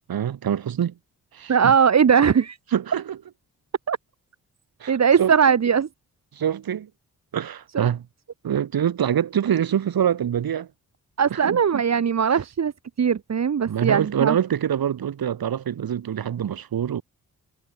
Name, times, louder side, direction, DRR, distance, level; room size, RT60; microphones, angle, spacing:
voice 1, 0.1-0.9 1.3-1.7 2.7-3.2 4.8-5.3 6.3-6.9 7.3-8.0 8.4-10.7 11.3-11.8 13.7-17.0, right 9 dB, 70° right, 2.6 m, -25 dB
voice 2, 1.5-2.6 3.9-4.0 4.9-5.9 7.7-7.9 11.2-12.7 13.0-14.4, right 7 dB, 45° right, 1.1 m, -19 dB
supercardioid pair, 45°, 37 cm